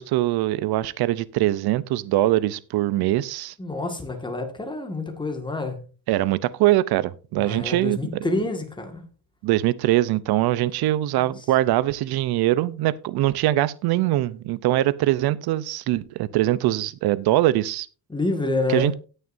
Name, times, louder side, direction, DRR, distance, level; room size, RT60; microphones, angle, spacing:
voice 1, 0.0-3.5 6.1-8.0 9.4-17.9 18.7-18.9, right 15 dB, 60° right, 0.7 m, -22 dB
voice 2, 3.6-5.8 7.4-9.1 11.2-11.5 18.1-19.0, left 2 dB, 10° left, 1.9 m, -28 dB
18.0 x 6.6 x 2.6 m
cardioid pair, 140°, 43 cm